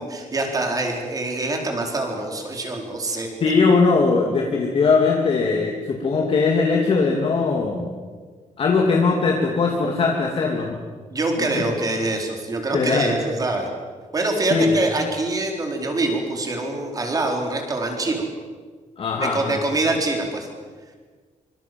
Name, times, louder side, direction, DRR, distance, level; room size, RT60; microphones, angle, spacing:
voice 1, 0.0-3.3 11.1-13.7 14.1-18.3 19.2-20.5, right 2 dB, 25° right, 2 dB, 4.2 m, -25 dB
voice 2, 3.4-7.9 8.6-10.8 11.4-11.6 12.7-13.2 14.5-14.7 19.0-19.6, left 4 dB, 45° left, 0 dB, 2.7 m, -20 dB
25.5 x 24.5 x 7.8 m, 1.5 s
wide cardioid pair, 175°, 13 cm